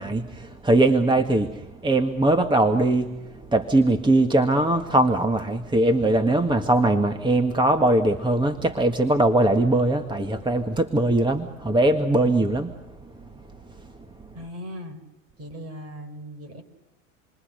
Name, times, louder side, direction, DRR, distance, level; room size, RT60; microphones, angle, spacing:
voice 1, 0.0-3.1 3.5-12.7, right 1 dB, 10° right, 7 dB, 1.7 m, -21 dB
voice 2, 14.3-15.0 15.4-16.6, equal, 35° right, 8 dB, 5.9 m, -38 dB
28.5 x 22.5 x 6.7 m, 0.96 s
hypercardioid pair, 95°, 40 cm